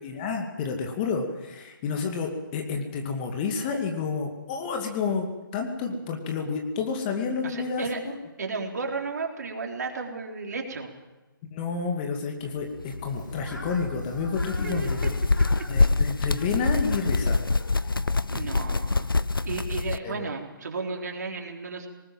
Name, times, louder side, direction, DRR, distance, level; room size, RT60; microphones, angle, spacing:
voice 1, 0.0-8.1 11.5-15.2 15.7-17.4 20.0-20.2, left 5 dB, 25° left, 3 dB, 2.3 m, -30 dB
voice 2, 7.4-8.0 8.4-10.9 14.6-14.9 15.6-15.7 18.3-19.1 19.4-21.9, right 4 dB, 55° right, 2 dB, 3.8 m, -33 dB
sound 1, 12.8-20.0, left 3 dB, 85° left, 0.7 m, -26 dB
Fowl, 13.0-18.2, left 2 dB, 65° left, 6.5 m, -47 dB
19.5 x 19.5 x 7.6 m, 1.1 s
figure-of-eight pair, 145°, 11 cm